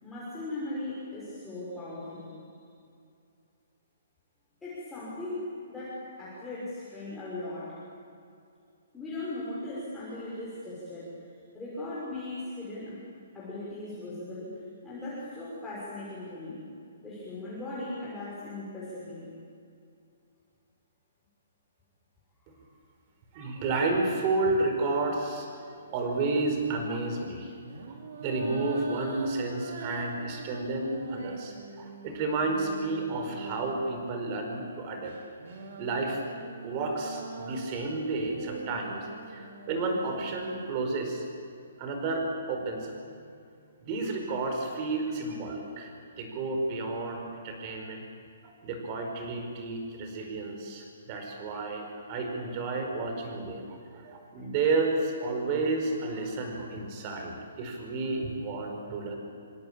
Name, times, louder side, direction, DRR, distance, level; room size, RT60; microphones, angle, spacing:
voice 1, 0.0-2.3 4.6-7.7 8.9-11.1 11.5-13.0 13.3-14.6 14.8-16.6 17.0-19.3, left 2 dB, 5° left, -10 dB, 6.0 m, -38 dB
voice 2, 23.3-25.5 25.9-27.5 27.9-35.1 35.8-36.2 36.6-41.3 41.8-43.4 43.8-48.0 48.4-59.2, right 3 dB, 25° right, 3 dB, 4.9 m, -31 dB
sound 1, 25.9-26.2 27.6-34.2 35.0-40.7, right 4 dB, 50° right, 4.2 m, -43 dB
26.5 x 25.5 x 8.8 m, 2.4 s
hypercardioid pair, 170°, 0 cm